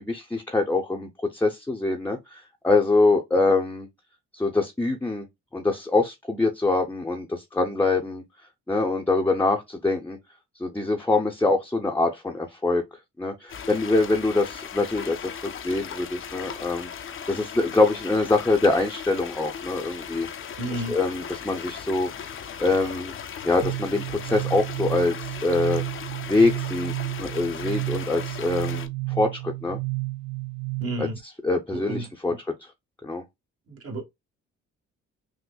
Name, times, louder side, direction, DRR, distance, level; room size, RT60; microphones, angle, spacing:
voice 1, 0.0-3.9 4.3-5.3 5.5-8.2 8.7-10.2 10.6-12.8 13.2-16.9 17.3-20.3 20.9-23.1 23.4-25.8 26.3-26.9 27.2-29.8 31.0-31.1 31.4-32.3 33.0-33.2, left 3 dB, 5° left, 0.7 m, -24 dB
sound 1, 13.5-28.9, left 7 dB, 45° left, 0.6 m, -38 dB
voice 2, 20.6-21.0 30.8-31.2 31.7-32.4 33.7-34.0, right 1 dB, 50° right, 1.4 m, -32 dB
sound 2, 23.6-31.2, right 23 dB, 80° right, 0.6 m, -32 dB
6.0 x 2.1 x 2.3 m
cardioid pair, 90°, 30 cm